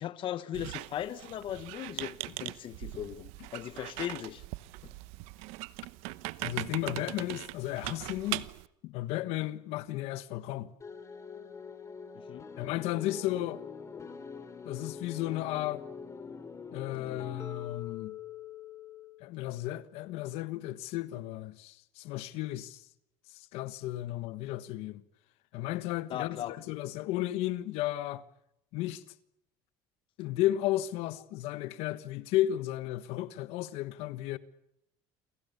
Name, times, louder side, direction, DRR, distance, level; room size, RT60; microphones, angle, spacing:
voice 1, 0.0-4.4 4.8-4.9 12.1-12.5 26.1-26.6, left 11 dB, 55° left, 1.1 m, -38 dB
Squeak, 0.5-8.7, right 20 dB, 85° right, 1.0 m, -40 dB
voice 2, 6.4-8.4 8.8-10.7 12.6-13.6 14.6-15.8 16.7-18.1 19.2-22.8 23.5-25.0 25.5-28.2 28.7-29.0 30.2-34.4, left 14 dB, 80° left, 1.4 m, -34 dB
sound 1, 10.8-19.2, left 6 dB, 30° left, 3.3 m, -44 dB
29.0 x 23.5 x 6.9 m
supercardioid pair, 100°, 10 cm